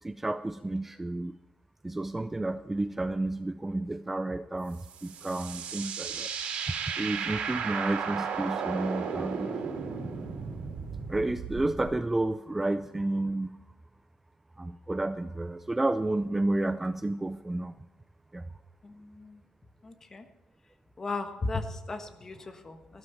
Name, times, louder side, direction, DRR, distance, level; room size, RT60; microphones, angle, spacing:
voice 1, 0.0-1.3 1.8-6.3 6.9-9.5 11.1-13.6 14.6-17.7 18.3-18.4, right 2 dB, 10° right, 11 dB, 0.4 m, -31 dB
sound 1, 4.7-11.9, right 6 dB, 80° right, 3.2 m, -35 dB
voice 2, 18.8-19.4 19.8-20.2 21.0-23.0, left 3 dB, 20° left, 8 dB, 1.3 m, -36 dB
14.0 x 12.5 x 4.5 m, 1.1 s
cardioid pair, 160°, 2 cm